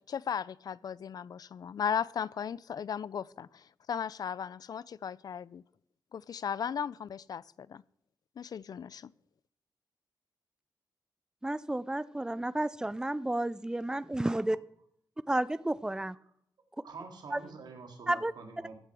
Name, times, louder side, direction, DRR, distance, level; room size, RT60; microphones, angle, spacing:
voice 1, 0.1-5.6 6.1-7.8 8.4-9.1, left 7 dB, 60° left, 0.3 m, -36 dB
voice 2, 11.4-14.6 15.3-16.2 17.3-17.4 18.1-18.3, right 1 dB, 10° right, 0.4 m, -31 dB
voice 3, 16.8-18.7, right 4 dB, 75° right, 2.2 m, -46 dB
14.5 x 6.6 x 6.1 m
wide cardioid pair, 150°, 7 cm